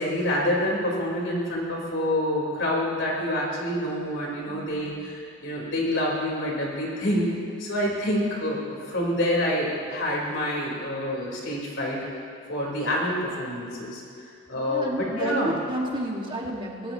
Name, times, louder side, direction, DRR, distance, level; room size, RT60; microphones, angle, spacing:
voice 1, 0.0-7.3 7.6-12.0 12.5-14.0 14.5-15.5, left 1 dB, 65° left, -4 dB, 4.4 m, -27 dB
voice 2, 4.5-5.2 14.5-16.9, right 1 dB, 25° right, -1 dB, 2.0 m, -32 dB
24.0 x 18.5 x 3.1 m, 2.4 s
head